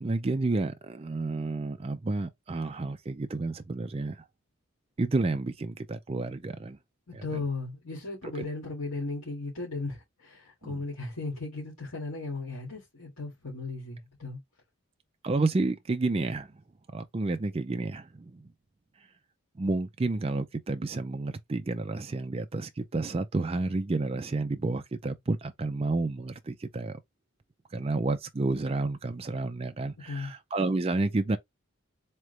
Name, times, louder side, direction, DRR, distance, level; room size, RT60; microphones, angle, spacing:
voice 1, 0.0-4.2 5.0-6.8 7.1-7.4 8.4-8.5 10.6-10.7 15.2-16.5 16.9-18.4 19.6-27.0 27.7-31.4, right 2 dB, 25° right, 0.4 m, -30 dB
voice 2, 7.1-14.4 30.1-30.3, left 3 dB, 75° left, 2.1 m, -36 dB
3.7 x 3.2 x 3.2 m
head